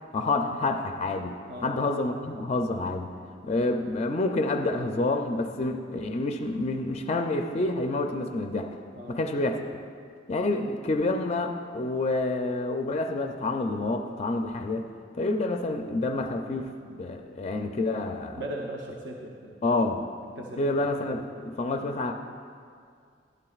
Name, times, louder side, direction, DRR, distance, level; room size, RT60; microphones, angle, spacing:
voice 1, 0.1-3.1 3.4-8.7 9.1-9.6 10.3-14.9 15.2-18.4 19.6-20.0 20.6-22.2, left 2 dB, 35° left, 5 dB, 0.4 m, -28 dB
voice 2, 1.5-1.8 9.0-9.2 18.4-19.9 20.4-20.8 21.1-21.4, right 1 dB, 65° right, -2 dB, 0.8 m, -39 dB
11.5 x 11.5 x 2.4 m, 2.2 s
head